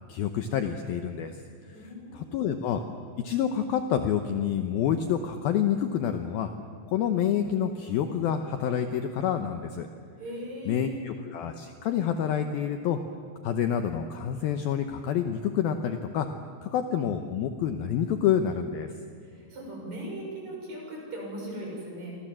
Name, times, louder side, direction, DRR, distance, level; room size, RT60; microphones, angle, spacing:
voice 1, 0.1-1.4 2.1-2.8 3.2-6.5 6.9-9.9 10.7-13.0 13.4-16.3 16.6-18.9, left 9 dB, 75° left, 7 dB, 2.3 m, -28 dB
voice 2, 1.7-2.4 10.2-11.1 19.2-22.2, right 1 dB, 40° right, -1 dB, 7.7 m, -39 dB
29.0 x 24.5 x 7.6 m, 2.2 s
omnidirectional pair, 5.2 m